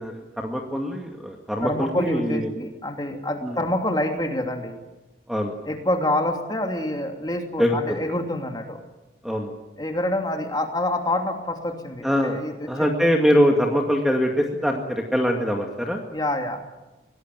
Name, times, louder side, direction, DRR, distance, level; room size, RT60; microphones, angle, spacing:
voice 1, 0.0-2.5 3.4-3.6 5.3-5.5 7.6-8.0 9.2-9.5 12.0-12.4 12.7-16.0, equal, ahead, 1 dB, 2.1 m, -23 dB
voice 2, 1.6-4.8 5.6-8.8 9.8-12.9 16.1-16.6, left 1 dB, 20° left, 3 dB, 2.8 m, -27 dB
23.0 x 18.5 x 9.3 m, 1.1 s
head